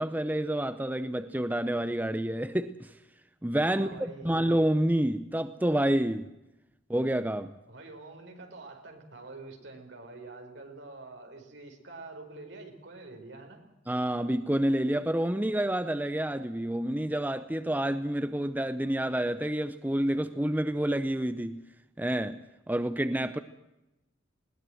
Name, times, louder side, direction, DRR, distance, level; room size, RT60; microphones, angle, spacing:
voice 1, 0.0-2.9 3.4-6.3 6.9-7.5 13.9-21.7 22.0-23.4, right 1 dB, 10° right, 0.6 m, -28 dB
voice 2, 3.7-4.5 7.7-13.6, right 3 dB, 65° right, 4.8 m, -46 dB
20.5 x 18.5 x 7.8 m
head